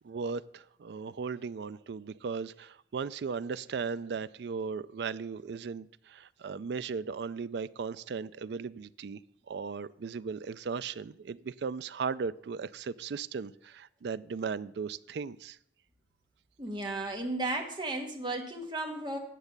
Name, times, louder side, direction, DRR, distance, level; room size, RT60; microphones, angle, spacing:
voice 1, 0.0-9.2 9.5-15.6, right 5 dB, 65° right, 17 dB, 0.4 m, -37 dB
voice 2, 16.6-19.2, right 2 dB, 25° right, 2 dB, 1.4 m, -34 dB
9.3 x 7.2 x 6.6 m, 0.71 s
head